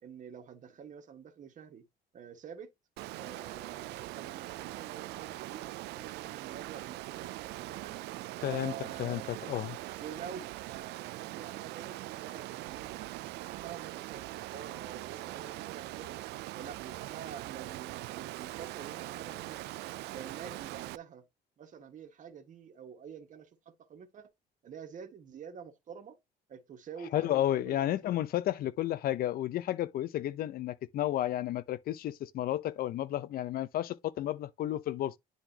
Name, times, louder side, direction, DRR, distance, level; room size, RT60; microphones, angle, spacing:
voice 1, 0.0-1.8 2.1-2.7 3.2-8.0 8.4-9.3 10.0-16.2 16.5-19.7 20.1-21.2 21.6-24.3 24.6-26.2 26.5-28.0, right 7 dB, 50° right, 1.6 m, -48 dB
Water, 3.0-21.0, right 18 dB, 80° right, 0.4 m, -42 dB
voice 2, 8.4-8.7 9.0-9.8 27.1-35.2, left 13 dB, 60° left, 0.7 m, -32 dB
10.0 x 4.0 x 2.8 m
cardioid pair, 110°, 17 cm